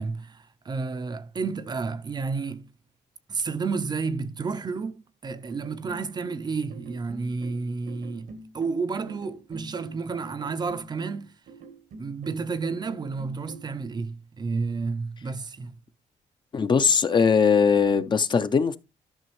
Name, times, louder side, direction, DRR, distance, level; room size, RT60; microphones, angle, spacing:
voice 1, 0.0-2.7 3.3-11.3 12.0-15.7, right 4 dB, 30° right, 0.6 m, -31 dB
sound 1, 5.5-13.7, right 3 dB, 80° right, 1.4 m, -46 dB
voice 2, 16.5-18.8, left 6 dB, 35° left, 0.6 m, -20 dB
12.5 x 5.9 x 3.1 m
cardioid pair, 115°, 14 cm